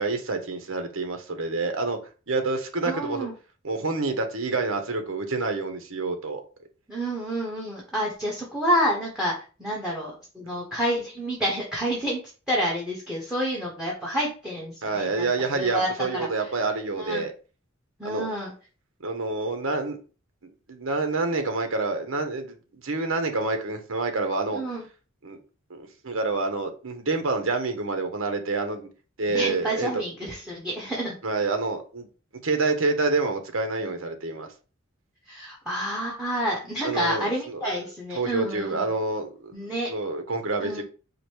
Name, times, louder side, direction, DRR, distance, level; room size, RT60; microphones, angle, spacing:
voice 1, 0.0-2.0 2.3-3.3 3.6-6.4 14.8-17.3 18.0-18.3 19.0-20.0 20.4-24.6 25.2-25.4 25.7-28.9 29.2-30.0 31.2-32.1 32.4-34.5 36.8-37.6 38.1-39.5 39.9-40.8, right 3 dB, 70° right, 1.0 m, -27 dB
voice 2, 2.8-3.3 6.9-9.3 9.6-12.2 12.5-16.5 17.0-17.3 18.0-18.5 24.5-24.8 29.3-31.2 33.8-33.9 35.3-38.8 39.5-39.9 40.6-40.8, equal, 5° right, 1.1 m, -29 dB
4.9 x 2.2 x 4.6 m
head